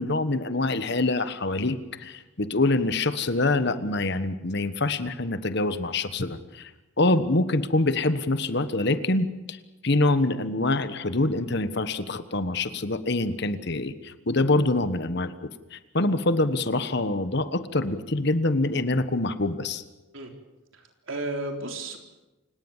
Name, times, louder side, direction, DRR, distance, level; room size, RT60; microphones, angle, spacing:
voice 1, 0.0-6.7 7.0-9.6 9.8-19.8, left 2 dB, 55° left, 12 dB, 1.3 m, -25 dB
voice 2, 20.7-22.0, right 2 dB, 70° right, 3 dB, 3.8 m, -33 dB
28.5 x 18.0 x 7.3 m, 1.1 s
head